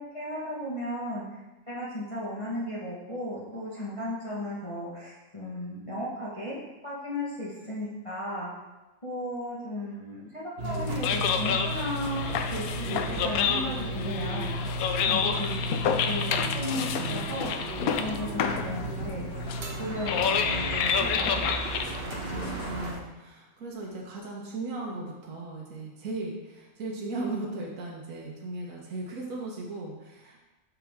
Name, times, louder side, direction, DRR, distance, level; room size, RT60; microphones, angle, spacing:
voice 1, 0.0-1.4 1.7-6.6 6.8-8.5 9.0-14.5 15.0-15.6 16.0-19.3 19.8-21.6, left 1 dB, 20° left, -7 dB, 1.1 m, -35 dB
sound 1, 10.6-22.9, right 1 dB, 45° right, 1.0 m, -34 dB
sound 2, 10.7-23.0, left 7 dB, 70° left, 1.0 m, -29 dB
voice 2, 15.1-15.5 22.3-30.4, right 2 dB, 60° right, -2 dB, 1.4 m, -37 dB
5.8 x 5.7 x 3.5 m, 1.1 s
omnidirectional pair, 1.7 m